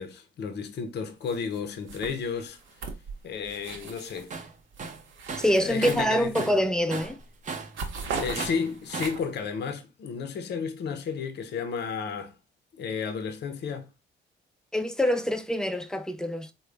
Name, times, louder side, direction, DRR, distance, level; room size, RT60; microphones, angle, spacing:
voice 1, 0.0-2.6 3.2-4.3 5.6-6.5 8.2-12.4 12.7-13.9, left 6 dB, 60° left, 0.6 m, -32 dB
sound 1, 1.3-1.6 1.9-4.3 4.7-6.6 7.0-7.2 7.5-9.4, right 5 dB, 80° right, 0.8 m, -38 dB
Tools, 4.3-4.5 4.8-6.7 6.9-7.8 8.4-9.2, right 4 dB, 40° right, 0.7 m, -37 dB
voice 2, 5.4-7.2 14.7-16.5, equal, 5° left, 0.5 m, -25 dB
3.7 x 2.2 x 3.3 m
cardioid pair, 90°, 20 cm